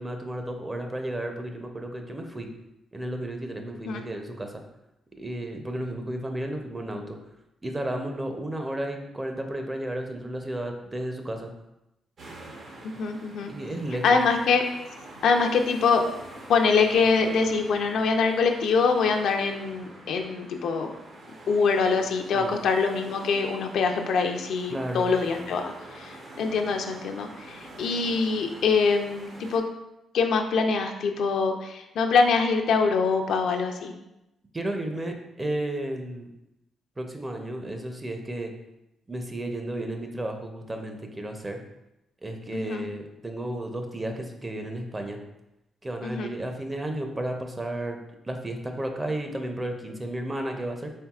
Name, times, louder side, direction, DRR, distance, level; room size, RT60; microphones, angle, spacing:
voice 1, 0.0-2.5 2.9-4.5 5.2-7.2 7.6-11.5 13.5-14.2 22.3-22.5 24.7-25.1 34.5-36.3 37.0-38.5 39.1-41.6 42.2-45.2 45.8-50.9, right 1 dB, 20° right, 4 dB, 0.5 m, -33 dB
sound 1, 12.2-29.6, right 2 dB, 60° right, 0.8 m, -45 dB
voice 2, 12.8-13.5 14.0-14.6 15.2-16.0 16.5-20.9 21.5-29.7 30.1-33.9 42.5-42.9 46.0-46.3, left 5 dB, 75° left, 4 dB, 0.4 m, -24 dB
4.4 x 3.4 x 2.3 m, 0.90 s
cardioid pair, 85°, 0 cm